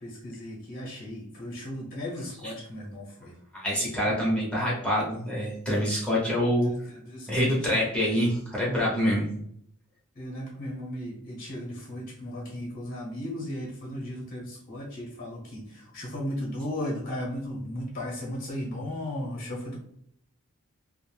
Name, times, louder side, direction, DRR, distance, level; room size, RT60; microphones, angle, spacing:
voice 1, 0.0-3.3 6.2-6.3 6.7-7.7 10.2-19.8, left 1 dB, 40° left, -3 dB, 0.8 m, -36 dB
voice 2, 3.5-6.7 7.3-9.3, equal, 5° left, -6 dB, 0.6 m, -26 dB
2.4 x 2.0 x 3.1 m, 0.69 s
head